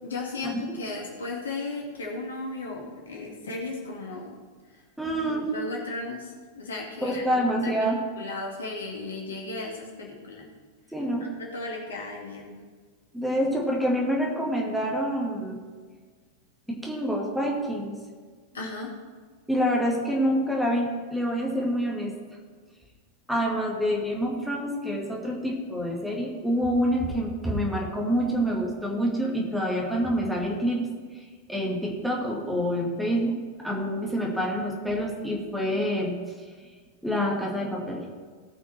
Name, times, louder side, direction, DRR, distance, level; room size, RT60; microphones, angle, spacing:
voice 1, 0.0-4.4 5.2-10.5 11.2-12.6 18.5-18.9, left 3 dB, 70° left, -1 dB, 2.4 m, -36 dB
voice 2, 5.0-5.5 7.0-8.0 10.9-11.3 13.1-15.6 16.8-17.9 19.5-22.1 23.3-30.8 31.1-33.3 33.6-36.1 37.0-38.0, equal, 5° right, -2 dB, 2.4 m, -27 dB
18.0 x 6.1 x 4.5 m, 1.5 s
figure-of-eight pair, 90°, 0 cm